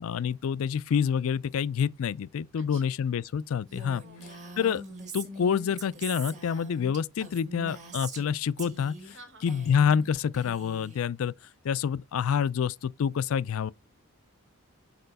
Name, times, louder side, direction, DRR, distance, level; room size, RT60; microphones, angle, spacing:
voice 1, 0.0-4.0 4.6-4.8 5.1-9.2 9.4-11.3 11.6-13.7, left 7 dB, 70° left, 0.3 m, -27 dB
voice 2, 2.5-3.0 4.0-4.6 9.1-9.6, right 2 dB, 55° right, 1.7 m, -52 dB
Female speech woman speaking, 3.7-8.3 8.6-9.1 9.4-10.1 10.3-11.0, right 2 dB, 35° right, 1.6 m, -43 dB
6.7 x 4.3 x 4.0 m
head